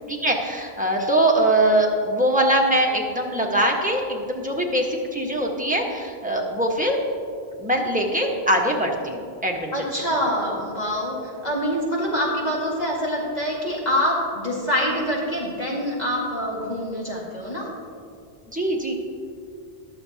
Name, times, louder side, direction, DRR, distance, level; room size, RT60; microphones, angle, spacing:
voice 1, 0.1-7.0 7.6-9.7 18.5-18.9, right 1 dB, 10° right, -1 dB, 1.2 m, -22 dB
voice 2, 9.7-17.7, equal, 40° left, -4 dB, 2.1 m, -25 dB
21.5 x 7.3 x 2.8 m, 2.4 s
omnidirectional pair, 1.1 m